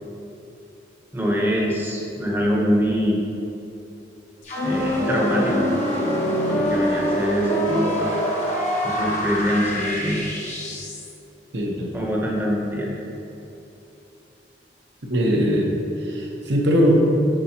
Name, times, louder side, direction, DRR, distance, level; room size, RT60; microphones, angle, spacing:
voice 1, 1.1-3.2 4.6-5.7 6.5-8.1 8.8-10.2 11.9-12.9, equal, 10° right, -3 dB, 0.9 m, -24 dB
sound 1, 4.4-11.1, equal, 45° left, 1.2 m, -24 dB
voice 2, 11.5-11.9 15.1-15.7 16.0-17.0, equal, 80° right, -1 dB, 1.1 m, -20 dB
9.6 x 4.6 x 2.9 m, 2.8 s
head